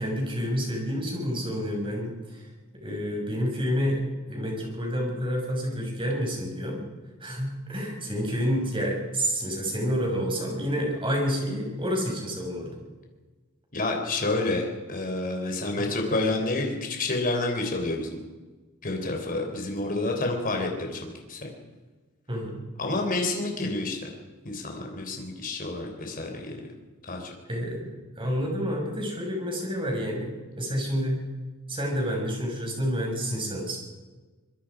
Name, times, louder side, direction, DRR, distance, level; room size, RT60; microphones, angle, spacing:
voice 1, 0.0-2.5 2.8-6.8 7.2-12.8 15.8-15.9 22.3-22.6 27.5-31.2 31.7-33.8, equal, 25° right, 0 dB, 6.4 m, -29 dB
voice 2, 13.7-18.2 18.8-21.0 21.3-21.5 22.8-24.1 24.4-26.6 27.0-27.3, left 2 dB, 40° left, 2 dB, 3.9 m, -29 dB
25.0 x 22.0 x 5.1 m, 1.3 s
head